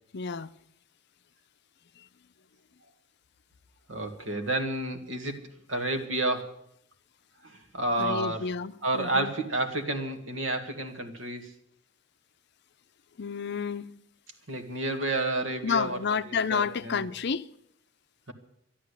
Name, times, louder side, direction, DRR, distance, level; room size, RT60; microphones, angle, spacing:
voice 1, 0.1-0.5 8.0-9.3 13.2-13.9 15.6-17.5, left 6 dB, 60° left, 0.6 m, -30 dB
voice 2, 3.9-6.5 7.4-8.5 8.8-11.5 14.5-16.0 16.5-17.1, right 2 dB, 85° right, 1.9 m, -30 dB
12.5 x 11.5 x 8.2 m
head